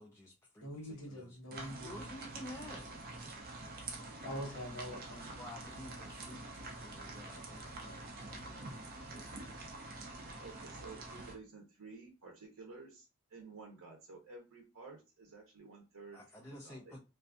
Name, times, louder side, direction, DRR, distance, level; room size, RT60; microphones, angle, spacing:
voice 1, 0.0-1.4 1.8-2.9 5.4-9.5 16.1-17.0, left 1 dB, 10° left, 0.3 m, -52 dB
voice 2, 0.6-1.9 4.2-5.3, equal, 65° left, 1.1 m, -44 dB
sound 1, 1.5-11.3, right 2 dB, 45° right, 0.5 m, -46 dB
voice 3, 10.4-16.2 16.6-17.0, right 4 dB, 85° right, 0.6 m, -52 dB
2.5 x 2.3 x 2.3 m
head